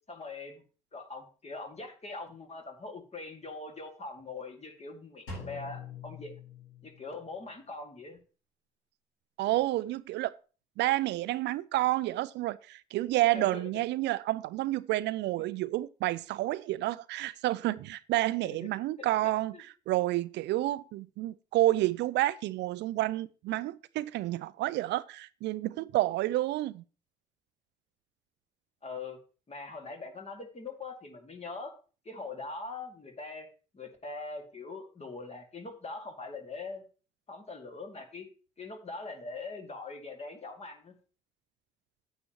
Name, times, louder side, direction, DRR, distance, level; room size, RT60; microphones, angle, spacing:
voice 1, 0.1-0.6 0.9-6.3 6.8-8.2 13.3-13.7 18.4-18.5 19.0-19.6 28.8-29.2 29.5-31.7 32.0-33.5 33.7-36.8 37.3-38.3 38.6-41.0, left 3 dB, 30° left, 2.2 m, -42 dB
Drum, 5.3-7.2, left 4 dB, 75° left, 4.2 m, -44 dB
voice 2, 9.4-10.3 10.8-26.8, right 16 dB, 60° right, 0.4 m, -30 dB
9.4 x 9.0 x 3.1 m
hypercardioid pair, 50°, 20 cm